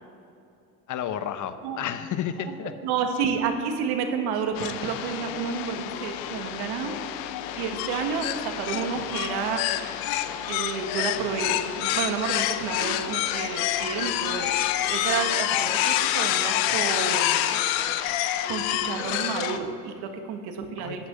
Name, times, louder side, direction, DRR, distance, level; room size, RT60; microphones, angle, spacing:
voice 1, 0.9-2.7 20.8-21.1, left 9 dB, 45° left, 11 dB, 1.0 m, -32 dB
voice 2, 2.8-7.0 7.5-9.7 10.4-14.5 14.9-17.6 18.5-21.1, right 6 dB, 70° right, 6 dB, 1.7 m, -30 dB
sound 1, 4.5-19.6, left 12 dB, 75° left, 0.9 m, -27 dB
13.0 x 6.3 x 8.4 m, 2.6 s
supercardioid pair, 80°, 40 cm